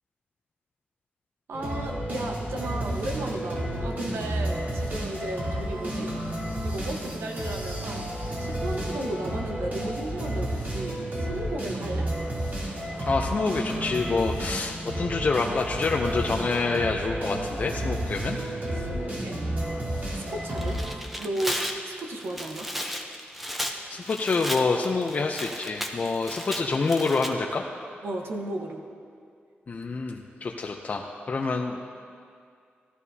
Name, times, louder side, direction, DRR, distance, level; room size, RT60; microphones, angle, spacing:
sound 1, 1.5-20.9, right 1 dB, 50° right, 3.1 m, -31 dB
voice 1, 1.5-6.1 6.6-8.1 8.4-12.1 18.8-19.4 20.1-22.7 28.0-28.8, right 1 dB, 85° right, 2 dB, 1.2 m, -34 dB
voice 2, 13.0-18.4 23.9-27.6 29.7-31.9, left 4 dB, 40° left, 1 dB, 0.6 m, -27 dB
Tearing, 20.4-27.3, equal, 5° right, 0.7 m, -34 dB
16.0 x 12.5 x 2.8 m, 2.3 s
wide cardioid pair, 135°, 4 cm